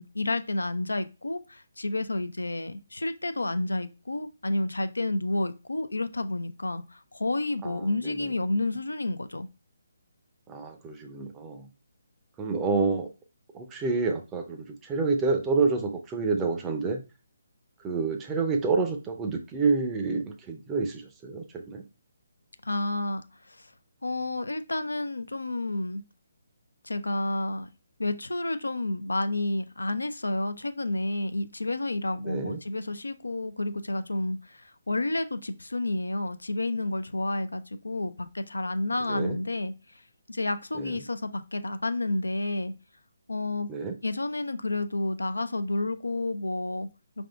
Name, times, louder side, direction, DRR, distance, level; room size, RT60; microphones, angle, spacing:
voice 1, 0.0-9.5 22.6-23.7 24.0-26.0 26.8-27.7 28.0-39.7 40.3-42.7 43.3-43.7 44.0-46.9, left 2 dB, 80° left, 11 dB, 0.4 m, -30 dB
voice 2, 7.6-8.3 10.5-11.7 12.4-13.1 13.5-17.0 17.8-21.8 32.2-32.6 39.1-39.4 40.7-41.0 43.7-44.0, right 4 dB, 15° right, 4 dB, 0.6 m, -28 dB
4.9 x 3.5 x 2.3 m, 0.30 s
figure-of-eight pair, 145°, 0 cm